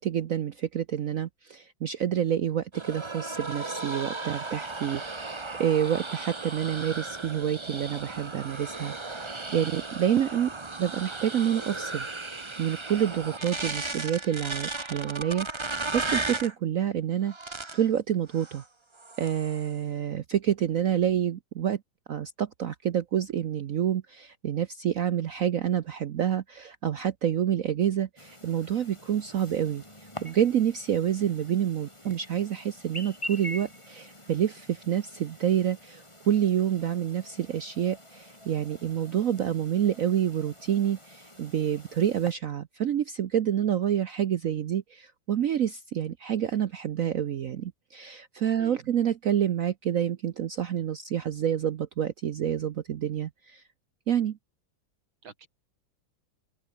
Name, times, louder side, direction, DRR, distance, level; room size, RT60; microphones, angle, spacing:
voice 1, 0.0-10.5 10.8-12.1 12.6-17.3 17.7-18.6 19.2-21.8 22.1-29.8 30.2-53.6 54.1-54.4, right 9 dB, 60° right, 0.9 m, -28 dB
sound 1, 2.7-16.5 17.3-17.9 18.3-18.6 19.0-19.7, right 3 dB, 20° right, 1.0 m, -36 dB
Chirp tweet, 28.2-42.3, left 1 dB, 15° left, 5.7 m, -46 dB
voice 2, 48.6-49.0 55.2-55.5, right 5 dB, 80° right, 3.5 m, -49 dB
open air
omnidirectional pair, 2.2 m